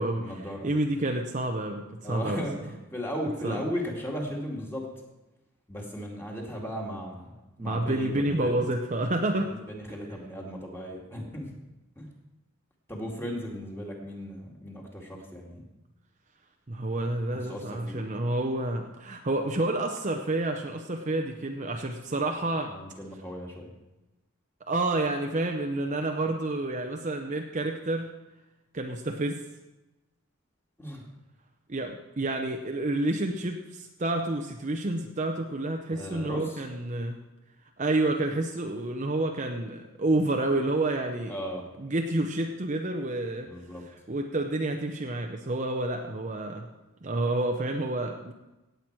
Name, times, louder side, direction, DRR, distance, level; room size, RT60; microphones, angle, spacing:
voice 1, 0.1-0.7 2.0-4.9 5.7-8.6 9.3-11.5 12.0-12.1 12.9-15.6 17.3-18.0 22.7-23.7 30.8-31.0 35.9-36.6 41.3-41.6 43.5-43.8, equal, 10° left, -1 dB, 2.1 m, -36 dB
voice 2, 0.6-2.4 3.4-3.6 7.6-9.5 16.7-22.7 24.7-28.1 28.7-29.4 31.7-37.2 37.8-41.3 41.8-43.5 44.1-46.7 47.0-48.3, right 2 dB, 35° right, 3 dB, 0.7 m, -29 dB
17.5 x 7.9 x 4.6 m, 1.0 s
head